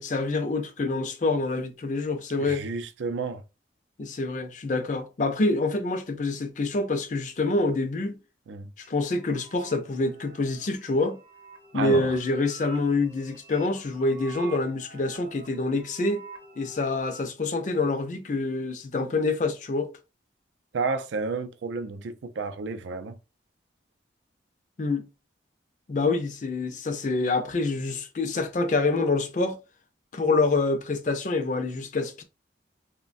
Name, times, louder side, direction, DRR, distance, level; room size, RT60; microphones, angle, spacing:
voice 1, 0.0-2.7 4.0-8.2 8.9-11.2 11.7-16.3 16.6-19.9 24.8-25.1 25.9-29.6 30.1-32.2, left 3 dB, 40° left, 0.4 m, -26 dB
voice 2, 2.4-3.4 8.5-8.7 11.7-12.1 20.7-23.2, right 4 dB, 80° right, 0.4 m, -31 dB
sound 1, 8.8-17.2, right 2 dB, 30° right, 0.5 m, -46 dB
3.1 x 2.1 x 2.5 m
head